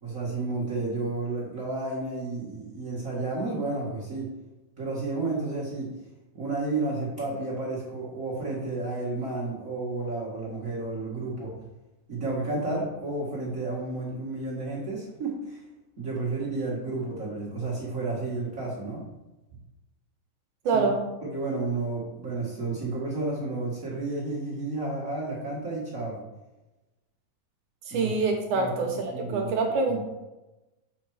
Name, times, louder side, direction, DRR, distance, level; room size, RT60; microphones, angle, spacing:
voice 1, 0.0-4.3 4.8-5.9 6.3-11.5 12.1-15.6 16.0-19.0 20.7-20.9 21.2-26.2 27.9-28.1 28.5-28.9 29.1-29.5 29.9-30.0, right 3 dB, 45° right, -6 dB, 1.1 m, -31 dB
voice 2, 20.7-21.0 27.9-30.0, right 3 dB, 75° right, 2 dB, 2.0 m, -26 dB
7.0 x 4.6 x 4.7 m, 1.0 s
omnidirectional pair, 4.0 m